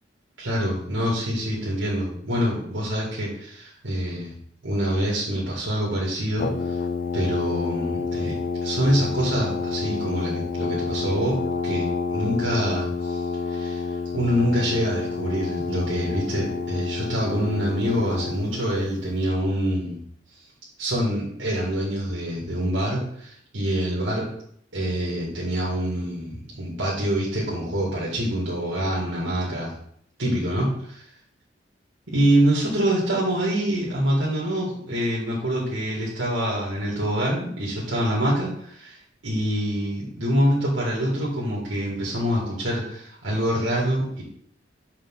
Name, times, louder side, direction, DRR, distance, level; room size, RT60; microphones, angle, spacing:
voice 1, 0.4-4.3 4.6-6.8 7.1-8.4 8.6-11.4 11.6-13.8 14.1-20.0 20.8-24.3 24.7-29.8 30.2-31.1 32.1-39.0 39.2-44.2, equal, 90° right, -5 dB, 1.9 m, -25 dB
Brass instrument, 6.4-18.7, left 4 dB, 50° left, 0.4 m, -29 dB
6.7 x 5.1 x 3.7 m, 0.67 s
head